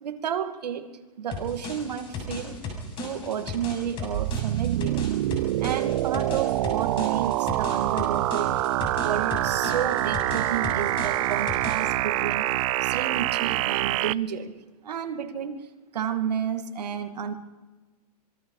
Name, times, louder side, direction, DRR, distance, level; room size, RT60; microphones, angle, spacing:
voice 1, 0.0-0.9 1.2-2.6 3.0-5.1 5.6-8.6 9.0-12.5 12.8-14.5 14.8-15.7 15.9-17.3, right 8 dB, 85° right, 7 dB, 2.4 m, -31 dB
sound 1, 1.3-12.0, left 4 dB, 25° left, 6.8 m, -36 dB
sound 2, 4.1-14.1, right 15 dB, 55° right, 0.6 m, -26 dB
26.0 x 22.5 x 4.8 m, 1.2 s
hypercardioid pair, 150°, 20 cm